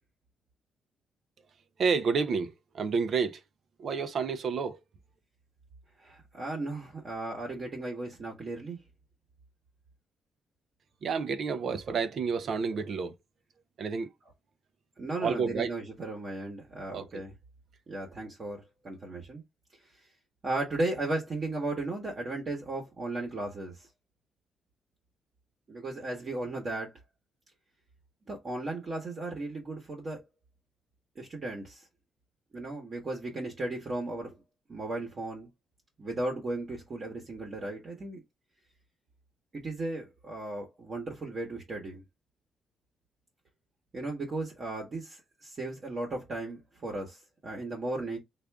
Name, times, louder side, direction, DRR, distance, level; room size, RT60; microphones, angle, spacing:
voice 1, 1.8-3.4 3.8-4.8 11.0-13.2 13.8-14.1 15.2-15.7 16.9-17.2, right 5 dB, 50° right, 0.5 m, -30 dB
voice 2, 6.0-8.8 15.0-17.3 17.9-19.4 20.4-23.9 25.7-26.9 28.3-30.2 31.2-31.8 32.5-34.3 34.7-35.5 36.0-38.2 39.5-42.0 43.9-48.2, right 2 dB, 35° right, 1.1 m, -36 dB
3.6 x 2.5 x 3.3 m
cardioid pair, 150°, 0 cm